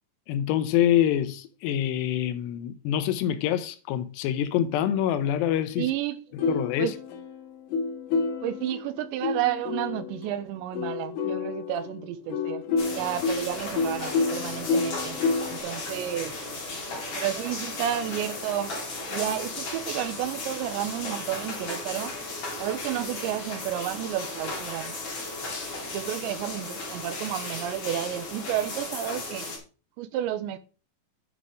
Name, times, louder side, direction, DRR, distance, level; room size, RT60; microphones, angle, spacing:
voice 1, 0.3-5.9 6.5-6.9 17.1-17.2, left 11 dB, 80° left, 2.8 m, -26 dB
voice 2, 5.8-6.2 6.8-7.0 8.4-15.2 15.5-16.4 17.1-18.7 19.1-22.2 22.6-25.0 25.9-29.5 30.0-30.6, right 11 dB, 90° right, 3.1 m, -31 dB
sound 1, 6.4-10.2 10.7-15.6, left 4 dB, 60° left, 2.4 m, -29 dB
sound 2, 12.8-29.6, left 2 dB, 35° left, 3.6 m, -35 dB
9.9 x 5.5 x 5.0 m
omnidirectional pair, 5.1 m